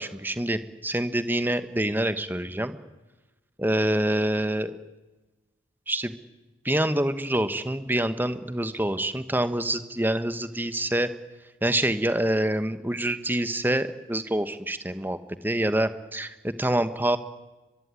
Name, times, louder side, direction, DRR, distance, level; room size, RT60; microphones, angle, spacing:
voice 1, 0.0-2.7 3.6-4.7 5.9-6.1 6.6-11.1 11.6-15.2 15.4-17.2, right 1 dB, 10° right, 11 dB, 1.2 m, -26 dB
23.5 x 23.5 x 9.8 m, 1.1 s
head